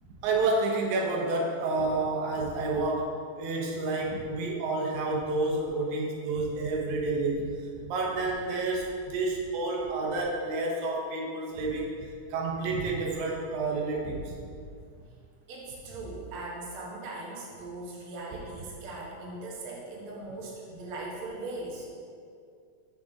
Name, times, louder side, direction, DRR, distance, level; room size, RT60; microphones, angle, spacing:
voice 1, 0.2-7.5 7.8-14.3, right 3 dB, 90° right, -2 dB, 2.4 m, -29 dB
voice 2, 15.5-21.9, right 2 dB, 55° right, -4 dB, 1.8 m, -39 dB
6.8 x 6.4 x 3.6 m, 2.3 s
omnidirectional pair, 3.3 m